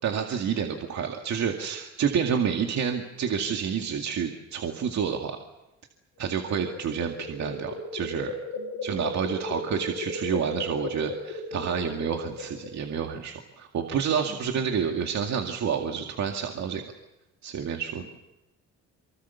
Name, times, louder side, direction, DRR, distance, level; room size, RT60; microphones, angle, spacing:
voice 1, 0.0-5.4 6.2-8.3 8.8-16.8 17.4-18.0, right 7 dB, 65° right, 3 dB, 2.3 m, -29 dB
sound 1, 6.2-12.9, left 2 dB, 85° left, 5.3 m, -36 dB
voice 2, 8.5-9.4 14.2-14.7, right 2 dB, 90° right, 6 dB, 5.7 m, -51 dB
24.5 x 24.5 x 7.1 m, 0.96 s
cardioid pair, 90°, 30 cm